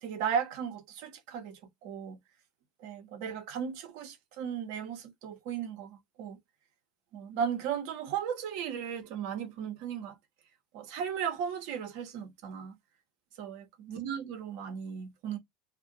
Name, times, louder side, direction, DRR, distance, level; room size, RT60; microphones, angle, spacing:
voice 1, 0.0-2.2 2.8-6.4 7.1-10.2 10.7-12.8 13.4-15.4, right 8 dB, 65° right, 0.9 m, -36 dB
2.5 x 2.2 x 3.7 m
hypercardioid pair, 85°, 0 cm